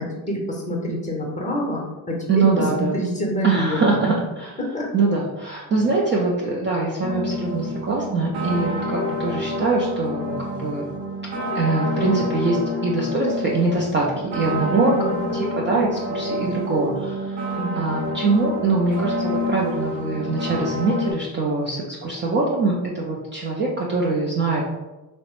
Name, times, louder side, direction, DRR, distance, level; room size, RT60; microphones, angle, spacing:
voice 1, 0.3-3.8 4.6-4.9 14.7-15.3 17.5-17.8, equal, 15° left, -1 dB, 0.7 m, -26 dB
voice 2, 2.3-3.0 3.4-4.6 4.9-10.9 11.5-17.5 17.7-24.6, right 3 dB, 25° right, -4 dB, 0.4 m, -23 dB
sound 1, 7.0-21.1, left 1 dB, 65° right, 0.9 m, -28 dB
3.0 x 2.1 x 2.9 m, 1.1 s
supercardioid pair, 80°, 49 cm